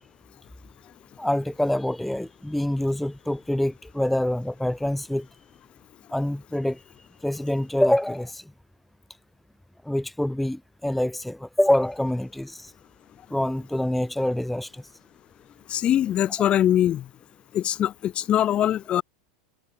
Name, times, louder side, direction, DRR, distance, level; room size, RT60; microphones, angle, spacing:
voice 1, 1.2-5.3 6.1-6.8 7.2-8.4 9.8-12.7 13.3-14.8, left 1 dB, 5° left, 0.5 m, -25 dB
voice 2, 15.7-17.1 17.5-19.0, left 11 dB, 35° left, 0.8 m, -22 dB
hypercardioid pair, 95°, 3 cm